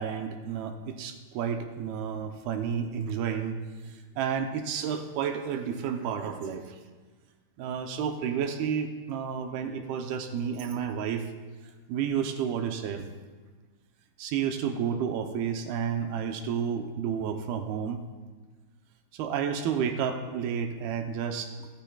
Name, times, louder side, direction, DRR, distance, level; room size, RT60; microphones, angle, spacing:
voice 1, 0.0-6.8 7.6-11.3 11.9-13.1 14.2-18.1 19.1-21.5, right 7 dB, 75° right, 5 dB, 2.6 m, -31 dB
26.0 x 13.5 x 2.3 m, 1.4 s
omnidirectional pair, 4.7 m